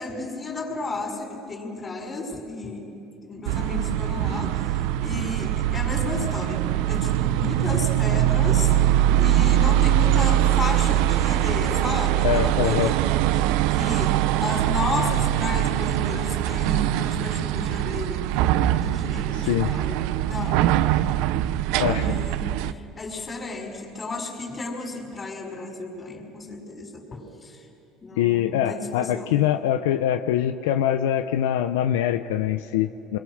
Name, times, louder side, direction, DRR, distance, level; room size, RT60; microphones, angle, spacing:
voice 1, 0.0-2.8 3.2-4.7 5.0-8.7 9.2-13.0 13.4-20.7 21.8-27.6 28.0-29.4, left 3 dB, 30° left, 1 dB, 5.5 m, -33 dB
sound 1, 3.5-22.7, right 13 dB, 75° right, 0.6 m, -22 dB
voice 2, 12.2-12.9 19.4-19.7 21.8-22.1 28.2-33.2, left 11 dB, 85° left, 9 dB, 0.6 m, -24 dB
27.0 x 22.5 x 6.4 m, 2.8 s
supercardioid pair, 90°, 0 cm